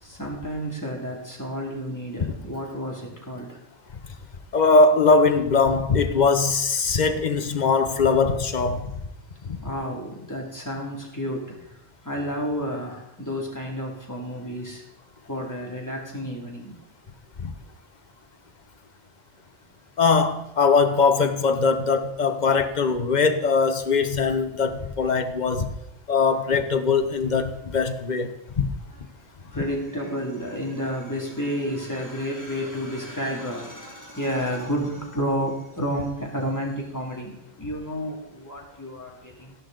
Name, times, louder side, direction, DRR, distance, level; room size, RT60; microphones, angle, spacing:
voice 1, 0.0-3.6 9.6-14.8 15.3-16.8 29.2-39.6, equal, 15° left, -1 dB, 2.5 m, -31 dB
voice 2, 4.5-9.0 9.4-9.6 17.4-17.5 20.0-25.7 26.1-28.3 28.6-28.7, left 4 dB, 40° left, 8 dB, 1.0 m, -21 dB
14.0 x 11.0 x 3.9 m, 0.84 s
omnidirectional pair, 1.2 m